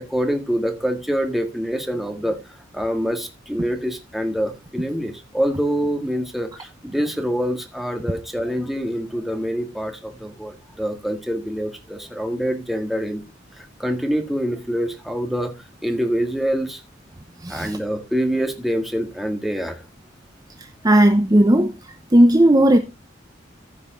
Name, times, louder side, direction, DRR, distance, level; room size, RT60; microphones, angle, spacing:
voice 1, 0.0-2.4 2.7-13.2 13.6-15.5 15.8-16.8 17.5-19.8, equal, ahead, 1.8 m, -25 dB
voice 2, 17.4-17.8 20.8-21.7 22.1-22.8, right 1 dB, 20° right, 0.7 m, -14 dB
15.0 x 5.6 x 3.8 m
head